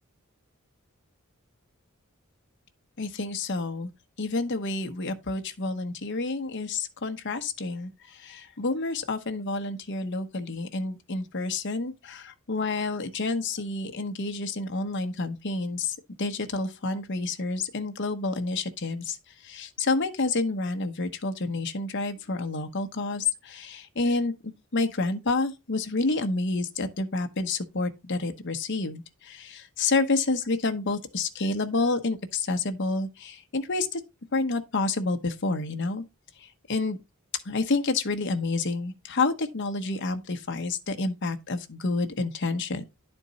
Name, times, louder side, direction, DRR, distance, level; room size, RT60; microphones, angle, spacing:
voice 1, 3.0-3.9 4.2-19.2 19.4-34.0 34.3-36.0 36.4-37.0 37.4-42.8, left 3 dB, 55° left, 1.0 m, -29 dB
10.5 x 4.4 x 4.1 m
head